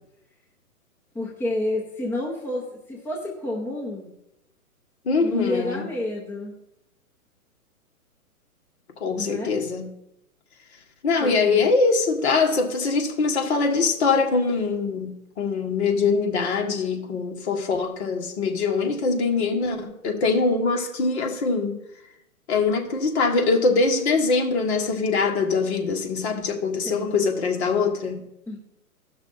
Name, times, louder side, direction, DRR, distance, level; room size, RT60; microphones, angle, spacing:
voice 1, 1.1-4.1 5.2-6.5 9.2-9.5 11.2-11.7 26.8-27.1 28.5-28.6, left 2 dB, 5° left, -4 dB, 0.9 m, -30 dB
voice 2, 5.0-5.8 9.0-9.9 11.0-21.7 22.5-28.2, left 4 dB, 45° left, 2 dB, 1.7 m, -23 dB
16.0 x 6.0 x 4.2 m, 0.84 s
hypercardioid pair, 150°, 46 cm